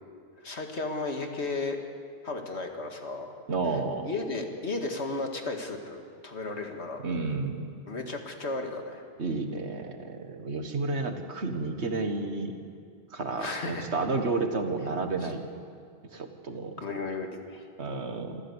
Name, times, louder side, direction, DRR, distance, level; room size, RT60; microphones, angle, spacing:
voice 1, 0.4-1.8 2.2-3.3 4.0-7.0 7.9-9.0 13.4-13.9 15.2-15.3 16.8-17.6, left 3 dB, 85° left, 3 dB, 2.3 m, -34 dB
voice 2, 3.5-4.1 7.0-7.7 9.2-12.5 13.1-15.4 16.1-16.7 17.8-18.4, right 3 dB, 85° right, 6 dB, 2.0 m, -31 dB
26.5 x 14.5 x 8.1 m, 2.2 s
omnidirectional pair, 1.1 m